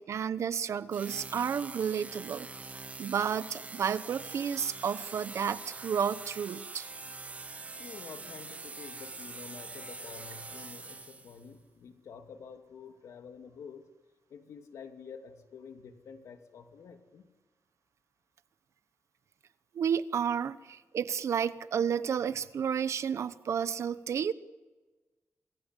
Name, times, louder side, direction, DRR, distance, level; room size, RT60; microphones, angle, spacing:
voice 1, 0.0-2.5 3.0-6.9 19.7-24.3, right 7 dB, 70° right, 14 dB, 1.0 m, -31 dB
sound 1, 0.9-11.5, right 3 dB, 30° right, 1.2 m, -44 dB
voice 2, 7.8-13.8 14.3-17.2, left 6 dB, 90° left, 5 dB, 2.7 m, -48 dB
28.0 x 21.0 x 8.3 m, 1.2 s
wide cardioid pair, 135°, 5 cm